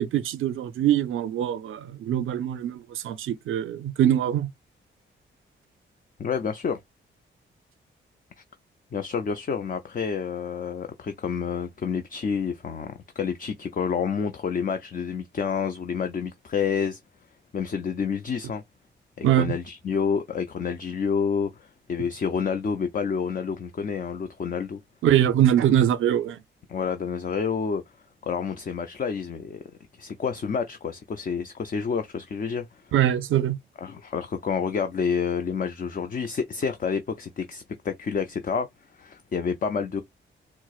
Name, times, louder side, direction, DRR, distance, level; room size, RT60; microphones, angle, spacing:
voice 1, 0.0-4.5 19.2-19.5 25.0-26.4 32.9-33.6, right 11 dB, 90° right, 0.5 m, -23 dB
voice 2, 6.2-6.8 8.9-17.0 17.5-18.6 19.2-24.8 26.7-27.8 28.2-29.6 30.0-32.8 33.8-38.7 38.9-40.0, left 6 dB, 45° left, 0.5 m, -29 dB
4.4 x 2.0 x 2.3 m
cardioid pair, 80°, 20 cm